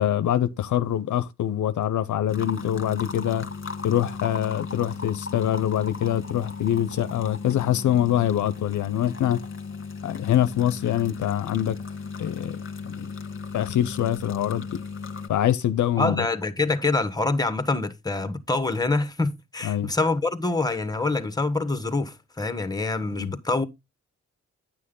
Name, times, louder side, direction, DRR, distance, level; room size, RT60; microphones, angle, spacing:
voice 1, 0.0-3.5 3.8-9.4 10.0-11.8 12.2-12.6 12.8-13.1 13.5-14.6 15.3-16.3 19.6-19.9 23.1-23.3, left 11 dB, 75° left, 0.6 m, -24 dB
sound 1, 2.3-15.3, left 4 dB, 40° left, 1.5 m, -36 dB
voice 2, 16.0-23.6, left 3 dB, 10° left, 1.3 m, -25 dB
9.9 x 6.3 x 3.7 m
supercardioid pair, 50°, 30 cm